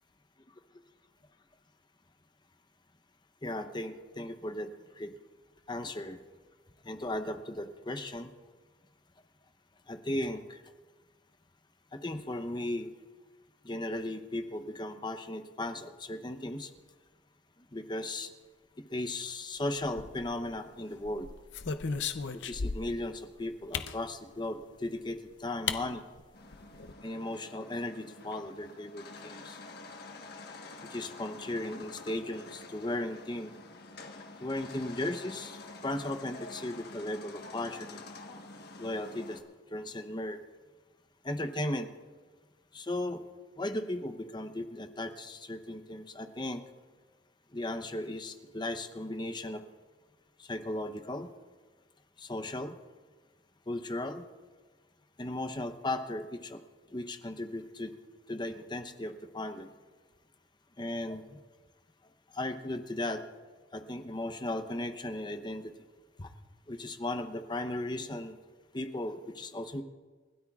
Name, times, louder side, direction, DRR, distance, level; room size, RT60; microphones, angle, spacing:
voice 1, 3.4-5.1 5.7-6.2 6.8-8.3 9.9-10.6 11.9-12.9 13.6-16.7 17.7-18.3 18.9-21.3 22.3-26.0 27.0-29.6 30.9-33.5 34.4-38.0 38.8-39.4 39.7-40.4 41.2-41.9 42.7-43.2 43.6-46.6 47.5-49.6 50.4-51.3 52.2-52.8 53.7-54.2 55.2-56.6 56.9-57.9 58.3-59.7 60.8-61.4 62.3-63.2 63.7-65.7 66.2-66.3 66.7-68.4 68.7-69.8, left 1 dB, 25° left, 8 dB, 0.8 m, -36 dB
sound 1, 19.8-20.5 21.0-23.0 23.7-24.0 25.1-25.2 25.7-25.8 26.2-26.3 26.5-26.9, left 5 dB, 75° left, 0.6 m, -35 dB
sound 2, 26.3-39.4, left 3 dB, 60° left, 1.3 m, -48 dB
30.0 x 12.5 x 2.4 m, 1.4 s
head